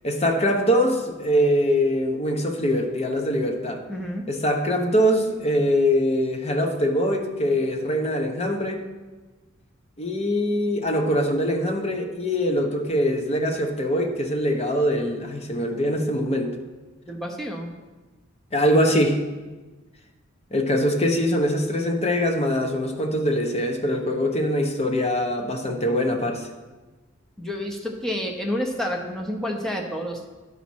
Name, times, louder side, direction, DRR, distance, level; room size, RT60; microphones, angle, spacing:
voice 1, 0.0-3.8 4.3-8.8 10.0-16.5 18.5-19.2 20.5-26.5, equal, 30° left, 4 dB, 0.9 m, -23 dB
voice 2, 3.9-4.2 17.1-17.7 27.4-30.3, equal, ahead, 1 dB, 0.9 m, -29 dB
11.0 x 4.1 x 6.2 m, 1.3 s
head